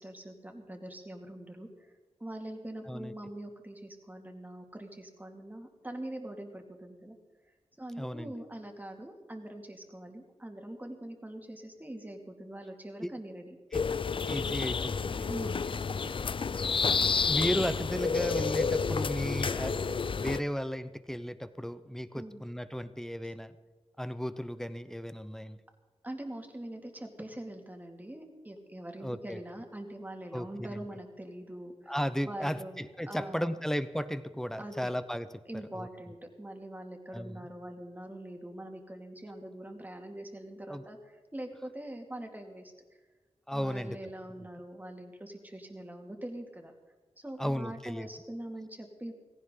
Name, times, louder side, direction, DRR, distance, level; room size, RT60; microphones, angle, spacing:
voice 1, 0.0-1.9 2.2-7.2 7.8-13.6 15.3-15.7 22.2-22.4 26.0-32.0 32.2-33.4 34.6-34.9 35.5-42.7 43.5-46.7 47.2-49.1, right 1 dB, 15° right, 3 dB, 2.3 m, -43 dB
voice 2, 8.0-8.3 13.0-13.1 13.7-13.8 14.3-16.1 17.2-23.5 24.0-25.6 29.0-29.4 30.3-30.9 31.9-35.3 35.7-35.9 37.1-37.5 40.7-40.8 43.5-44.0 47.4-48.1, equal, 5° left, 12 dB, 0.8 m, -35 dB
sound 1, 13.7-20.4, left 5 dB, 50° left, 0.4 m, -30 dB
18.0 x 16.5 x 3.9 m, 1.3 s
wide cardioid pair, 100°, 11 cm